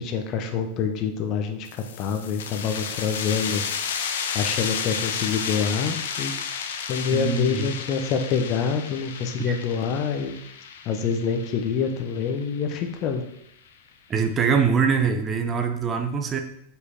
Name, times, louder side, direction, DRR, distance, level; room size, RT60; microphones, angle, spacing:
voice 1, 0.0-3.6 4.3-6.3 6.9-10.4 10.9-13.2, left 6 dB, 35° left, 6 dB, 1.1 m, -26 dB
sound 1, 1.7-13.0, left 7 dB, 60° left, 0.8 m, -32 dB
voice 2, 7.1-7.8 9.4-9.6 14.1-16.4, right 6 dB, 25° right, 6 dB, 0.9 m, -23 dB
8.1 x 5.5 x 4.5 m, 0.74 s
figure-of-eight pair, 90°, 0 cm